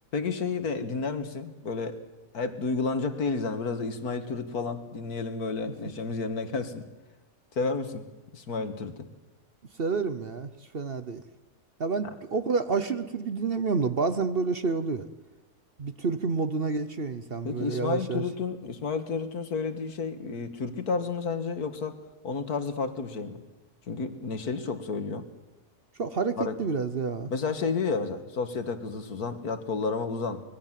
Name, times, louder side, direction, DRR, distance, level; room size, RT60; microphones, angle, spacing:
voice 1, 0.1-2.0 2.3-6.9 7.6-8.0 8.3-9.1 12.0-12.1 17.4-22.0 22.2-23.4 23.9-25.3 26.4-26.6 27.3-30.4, left 4 dB, 75° left, 9 dB, 2.2 m, -31 dB
voice 2, 9.8-11.2 11.8-15.0 15.8-18.2 26.0-27.3, right 4 dB, 45° right, 11 dB, 1.0 m, -29 dB
24.5 x 20.5 x 7.5 m, 1.1 s
omnidirectional pair, 1.6 m